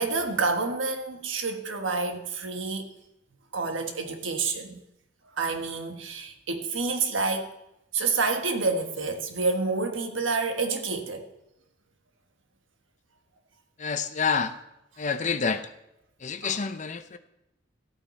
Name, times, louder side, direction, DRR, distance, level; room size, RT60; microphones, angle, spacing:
voice 1, 0.0-2.8 3.5-4.8 5.4-7.5 7.9-11.2 16.4-16.6, right 4 dB, 75° right, 1.3 m, -28 dB
voice 2, 13.8-14.5 15.0-15.6 16.2-17.2, left 5 dB, 40° left, 0.7 m, -28 dB
13.5 x 8.9 x 4.2 m
head